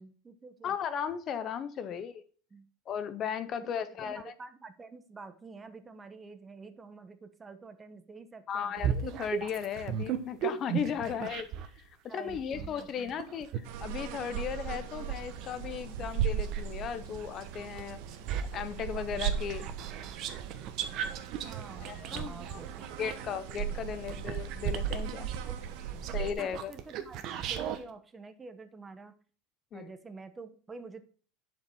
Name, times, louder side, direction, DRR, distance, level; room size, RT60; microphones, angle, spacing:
voice 1, 0.0-0.8 2.5-2.7 3.6-8.7 11.0-11.2 12.1-13.2 21.0-23.2 24.0-24.1 25.4-26.1 26.4-29.2 29.7-31.0, right 4 dB, 15° right, 10 dB, 0.9 m, -49 dB
voice 2, 0.6-2.2 2.9-4.3 8.5-11.5 11.7-18.0 18.5-19.7 21.8-22.6 23.0-25.3 26.1-26.7 29.7-29.9, left 8 dB, 30° left, 13 dB, 0.6 m, -36 dB
sound 1, 8.8-11.8 12.3-16.7 17.1-27.8, right 9 dB, 45° right, 1.1 m, -37 dB
sound 2, 13.6-26.3, right 9 dB, 65° right, 1.2 m, -37 dB
11.0 x 5.3 x 4.5 m, 0.43 s
supercardioid pair, 150°, 0 cm